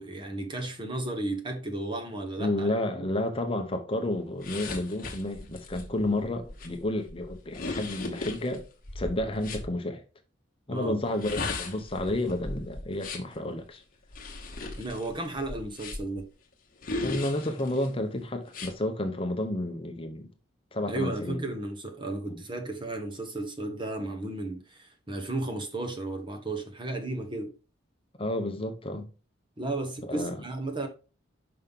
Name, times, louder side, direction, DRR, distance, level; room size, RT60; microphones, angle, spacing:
voice 1, 0.0-3.1 10.7-11.0 14.8-16.2 20.9-27.5 29.6-30.9, right 2 dB, 25° right, 1.0 m, -34 dB
voice 2, 2.4-8.7 8.9-10.0 10.7-13.8 17.0-20.3 20.7-21.4 22.3-22.4 28.2-29.1 30.0-30.4, left 1 dB, 25° left, 0.7 m, -31 dB
sound 1, 4.4-9.7 11.0-13.4 14.1-16.2 16.8-17.9 18.5-18.7, left 3 dB, 45° left, 1.1 m, -37 dB
5.6 x 5.4 x 3.6 m
head